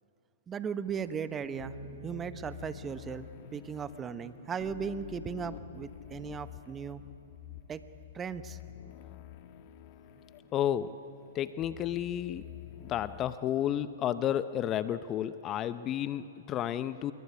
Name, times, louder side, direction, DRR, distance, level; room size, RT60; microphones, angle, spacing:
voice 1, 0.5-7.0 7.7-7.8 8.1-8.6, right 7 dB, 20° right, 12 dB, 1.1 m, -37 dB
sound 1, 0.9-13.4, left 12 dB, 45° left, 1.4 m, -49 dB
Bass guitar, 1.4-7.7, equal, 45° right, 3.2 m, -52 dB
voice 2, 10.5-10.9 11.3-12.4 12.8-17.1, left 11 dB, 30° left, 14 dB, 0.7 m, -31 dB
27.0 x 21.5 x 9.6 m, 2.8 s
hypercardioid pair, 120°, 0 cm